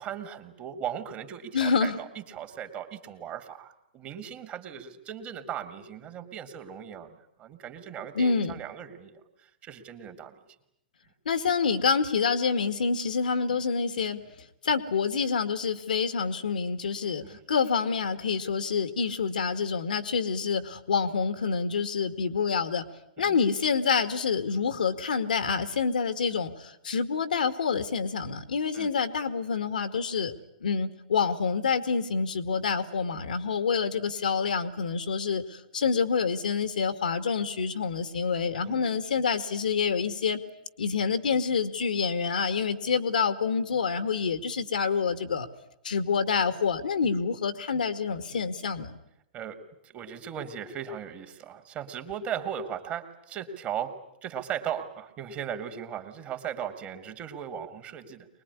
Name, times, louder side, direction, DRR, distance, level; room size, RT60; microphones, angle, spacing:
voice 1, 0.0-10.4 13.5-13.6 17.2-17.4 23.2-23.4 28.7-28.9 33.1-33.3 38.6-38.8 48.3-48.4 49.3-53.9 54.2-58.3, right 9 dB, 30° right, 7 dB, 2.9 m, -38 dB
voice 2, 1.5-2.0 8.1-8.6 11.3-14.3 14.6-22.8 23.2-30.3 30.6-40.4 40.8-45.5 45.8-49.0, left 5 dB, 75° left, 12 dB, 2.2 m, -27 dB
24.0 x 21.0 x 9.9 m, 0.78 s
hypercardioid pair, 115°, 5 cm